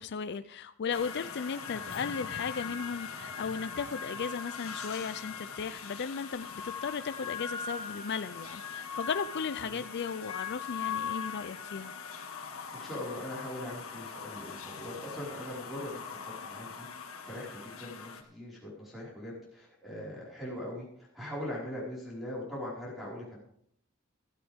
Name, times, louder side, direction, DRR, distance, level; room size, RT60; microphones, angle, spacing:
voice 1, 0.0-11.9, left 6 dB, 55° left, 12 dB, 0.5 m, -36 dB
sound 1, 0.9-18.2, left 6 dB, 85° left, 1.7 m, -41 dB
voice 2, 12.7-16.0 16.4-23.4, left 1 dB, ahead, -7 dB, 4.9 m, -41 dB
16.0 x 13.5 x 3.6 m, 0.68 s
head